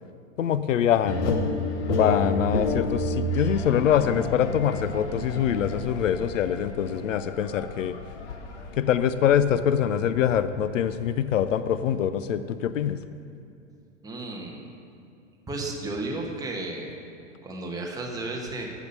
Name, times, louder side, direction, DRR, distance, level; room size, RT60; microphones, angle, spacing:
voice 1, 0.4-1.4 1.9-8.0 8.8-13.0, left 9 dB, 90° left, 12 dB, 0.5 m, -24 dB
sound 1, 1.1-12.1, left 2 dB, 65° left, 1.0 m, -31 dB
voice 2, 14.0-14.6 15.5-16.9 17.4-18.7, right 2 dB, 10° right, -1 dB, 1.0 m, -33 dB
7.1 x 6.0 x 5.3 m, 2.7 s
hypercardioid pair, 115°, 37 cm